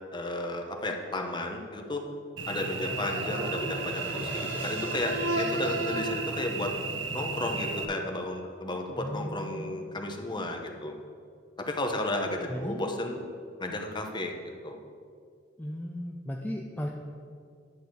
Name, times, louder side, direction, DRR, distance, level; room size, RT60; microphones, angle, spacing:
voice 1, 0.1-2.0 2.5-6.7 7.1-10.9 11.6-13.2 13.6-14.3 14.6-14.8, left 2 dB, 25° left, 3 dB, 1.0 m, -33 dB
sound 1, 2.1-8.2, equal, 10° right, 1.7 m, -46 dB
Cricket / Buzz, 2.4-7.8, right 3 dB, 80° right, 0.9 m, -32 dB
voice 2, 9.0-9.8 12.5-12.8 15.6-16.9, equal, 10° left, 0 dB, 0.5 m, -36 dB
11.0 x 4.3 x 7.9 m, 2.2 s
head